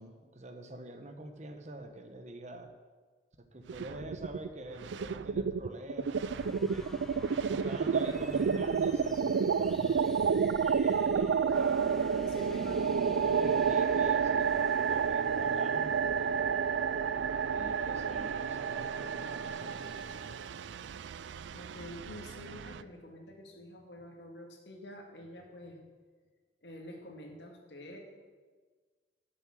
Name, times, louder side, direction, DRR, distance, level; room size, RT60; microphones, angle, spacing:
voice 1, 0.0-2.7 3.4-6.9 7.4-10.2 10.8-11.7 13.2-14.5 14.9-16.5 17.5-20.4, right 1 dB, 40° right, 7 dB, 1.0 m, -46 dB
sound 1, 3.7-4.5 4.8-22.8, right 6 dB, 80° right, 0.4 m, -30 dB
sound 2, 6.2-20.4, equal, ahead, 1.0 m, -52 dB
voice 2, 7.8-8.3 12.3-13.6 13.9-14.2 21.5-25.9 26.6-28.0, left 1 dB, 70° left, 2 dB, 2.0 m, -48 dB
12.0 x 7.2 x 6.3 m, 1.4 s
head